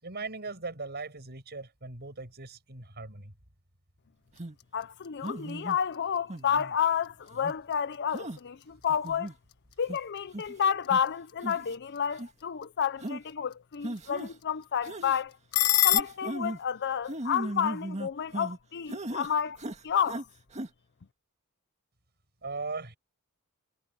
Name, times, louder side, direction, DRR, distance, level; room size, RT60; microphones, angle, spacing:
voice 1, 0.0-3.3 22.4-23.0, right 3 dB, 50° right, 6.3 m, -39 dB
sound 1, 4.2-16.0, left 15 dB, 70° left, 1.4 m, -35 dB
sound 2, 4.4-4.6 5.2-5.8 6.3-6.8 7.3-7.6 8.1-8.4 8.9-9.3 9.9-10.0 10.3-10.5 10.9-11.0 11.4-11.8 12.1-12.3 13.0-13.2 13.8-14.3 14.8-15.2 15.9-16.6 17.1-18.6 18.9-19.3 19.6-20.2 20.5-20.7, right 1 dB, 30° right, 1.9 m, -37 dB
voice 2, 4.7-9.3 9.8-15.3 15.8-19.6 19.8-20.3, left 8 dB, 50° left, 0.5 m, -30 dB
head